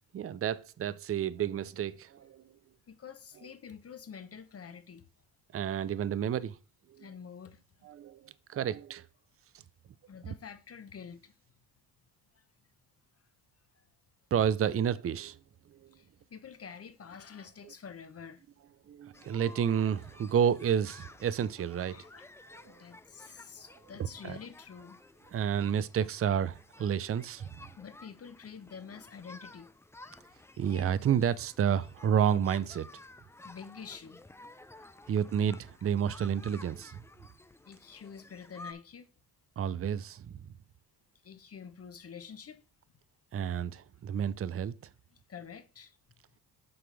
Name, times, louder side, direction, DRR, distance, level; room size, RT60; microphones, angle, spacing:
voice 1, 0.1-2.4 5.5-6.6 6.9-7.1 7.8-9.1 14.3-15.4 15.7-15.9 17.6-17.7 18.9-22.0 22.5-22.7 24.2-24.4 25.3-27.5 30.6-32.9 35.1-37.0 39.6-40.4 43.3-44.7, right 8 dB, 35° right, 0.6 m, -30 dB
voice 2, 2.9-5.0 7.0-7.6 10.1-11.3 12.3-12.4 15.9-18.4 21.8-22.3 22.7-25.0 27.8-29.7 30.0-30.2 33.4-34.2 35.0-35.1 37.6-39.1 41.2-42.6 45.3-46.0, left 6 dB, 35° left, 1.0 m, -47 dB
sound 1, 19.1-38.7, left 2 dB, 5° left, 0.5 m, -53 dB
7.8 x 5.9 x 3.4 m
cardioid pair, 90°, 39 cm